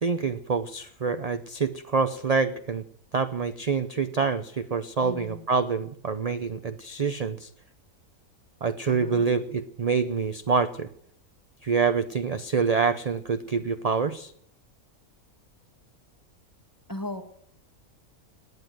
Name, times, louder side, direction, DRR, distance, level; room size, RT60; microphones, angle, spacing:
voice 1, 0.0-2.8 3.1-7.5 8.6-10.9 11.6-14.3, right 5 dB, 40° right, 10 dB, 0.6 m, -26 dB
voice 2, 5.0-5.5 8.9-9.3 16.9-17.2, left 1 dB, 15° left, 6 dB, 1.6 m, -37 dB
19.0 x 9.6 x 7.8 m, 0.65 s
omnidirectional pair, 1.5 m